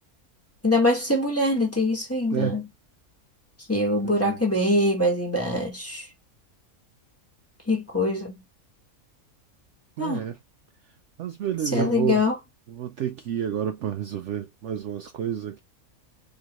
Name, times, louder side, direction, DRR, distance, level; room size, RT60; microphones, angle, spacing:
voice 1, 0.6-2.7 3.7-6.0 7.7-8.3 10.0-10.3 11.7-12.4, left 1 dB, 10° left, 1.5 m, -23 dB
voice 2, 2.3-2.6 4.0-4.4 10.0-10.4 11.2-12.2 12.7-15.6, right 10 dB, 65° right, 0.8 m, -30 dB
4.4 x 3.0 x 3.0 m
omnidirectional pair, 1.5 m